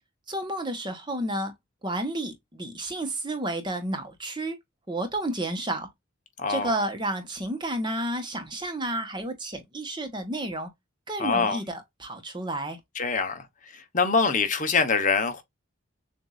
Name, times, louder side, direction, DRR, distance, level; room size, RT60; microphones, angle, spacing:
voice 1, 0.3-1.5 1.8-4.6 4.9-5.9 6.5-10.7 11.1-12.8, right 1 dB, 20° right, 1.0 m, -31 dB
voice 2, 6.4-6.7 11.2-11.6 13.0-13.5 13.7-15.4, left 4 dB, 35° left, 0.9 m, -24 dB
7.1 x 2.6 x 2.4 m
head